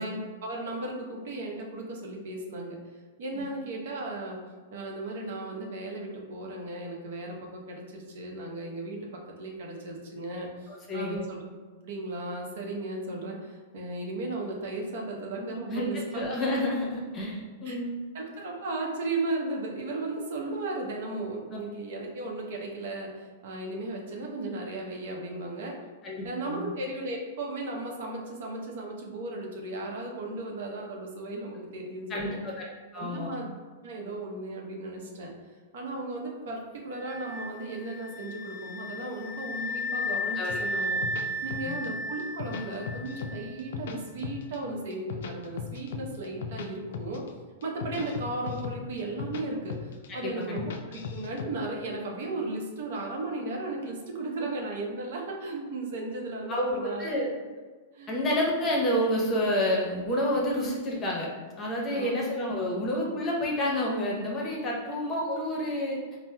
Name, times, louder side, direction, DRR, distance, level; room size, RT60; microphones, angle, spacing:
voice 1, 0.0-2.8 3.2-4.4 4.7-9.1 9.4-11.4 11.8-16.2 17.6-17.8 18.1-25.8 26.2-32.4 32.9-35.3 35.7-41.0 41.4-47.2 47.6-57.1 57.9-58.2 61.9-62.1, right 2 dB, 65° right, -1 dB, 0.7 m, -35 dB
voice 2, 10.9-11.2 15.7-18.0 26.0-26.6 32.1-32.7 32.9-33.3 40.3-40.6 41.6-41.8 50.1-50.6 56.5-57.3 58.1-61.3 61.6-66.0, left 1 dB, 25° left, -2 dB, 0.8 m, -29 dB
sound 1, 36.9-43.7, left 1 dB, 20° right, 0.8 m, -34 dB
sound 2, 40.5-41.9 42.2-43.3 43.6-44.6 44.9-46.7 46.9-47.3 47.6-49.4 49.7-50.1 50.4-51.5, left 7 dB, 70° left, 0.3 m, -37 dB
4.1 x 2.0 x 2.2 m, 1.4 s
hypercardioid pair, 115°, 0 cm